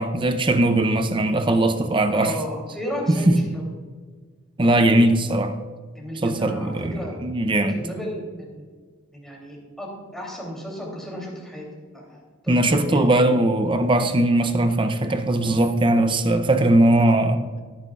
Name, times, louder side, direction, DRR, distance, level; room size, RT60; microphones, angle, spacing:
voice 1, 0.0-2.3 3.3-3.4 4.6-5.5 6.2-7.8 12.5-17.4, right 1 dB, 25° right, 8 dB, 0.6 m, -19 dB
voice 2, 2.1-3.7 5.9-7.1 7.7-8.6 9.1-11.7 11.9-13.0, equal, ahead, -3 dB, 3.0 m, -34 dB
16.5 x 9.2 x 2.4 m, 1.5 s
head